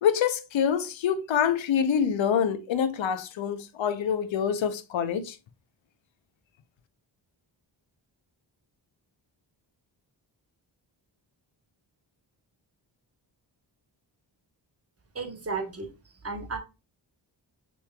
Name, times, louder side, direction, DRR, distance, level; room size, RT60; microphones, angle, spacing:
voice 1, 0.0-5.4, left 8 dB, 80° left, 0.7 m, -26 dB
voice 2, 15.1-16.6, right 4 dB, 30° right, 1.1 m, -34 dB
7.0 x 3.2 x 2.2 m
wide cardioid pair, 100°, 45 cm